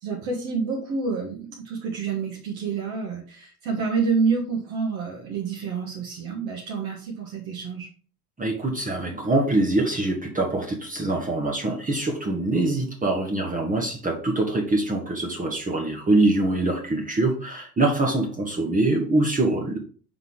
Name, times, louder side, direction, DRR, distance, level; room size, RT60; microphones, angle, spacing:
voice 1, 0.0-7.9, right 5 dB, 55° right, -2 dB, 1.7 m, -28 dB
voice 2, 8.4-19.8, right 2 dB, 15° right, 0 dB, 1.3 m, -24 dB
5.4 x 3.9 x 4.7 m, 0.41 s
figure-of-eight pair, 65°, 46 cm